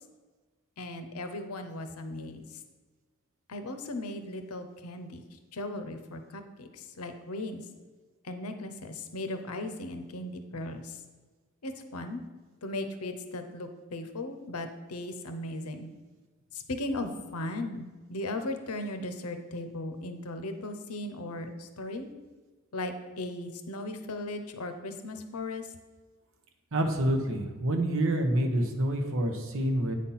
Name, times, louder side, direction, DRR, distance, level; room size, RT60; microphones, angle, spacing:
voice 1, 0.8-2.6 3.5-5.2 5.5-7.6 8.2-11.0 11.6-12.2 12.6-15.9 16.5-22.1 22.7-25.7, left 2 dB, 80° left, 7 dB, 0.8 m, -37 dB
voice 2, 26.7-29.9, right 1 dB, 65° right, 5 dB, 1.0 m, -27 dB
8.8 x 4.3 x 5.7 m, 1.3 s
head